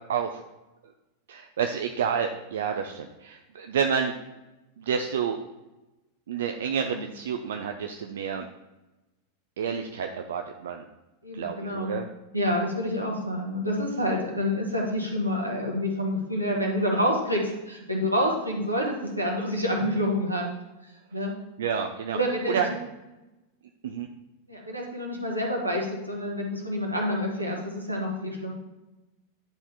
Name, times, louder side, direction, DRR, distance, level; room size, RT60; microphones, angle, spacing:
voice 1, 0.1-0.4 1.3-4.1 4.8-5.4 6.3-8.5 9.6-10.8 11.3-12.1 21.6-22.2 22.5-22.7 23.8-24.1, right 7 dB, 60° right, 5 dB, 0.4 m, -29 dB
voice 2, 11.2-12.0 12.3-20.5 21.1-21.3 22.1-22.7 24.5-28.5, equal, 85° right, -1 dB, 1.4 m, -28 dB
10.0 x 4.2 x 3.4 m, 1.0 s
figure-of-eight pair, 90°, 0 cm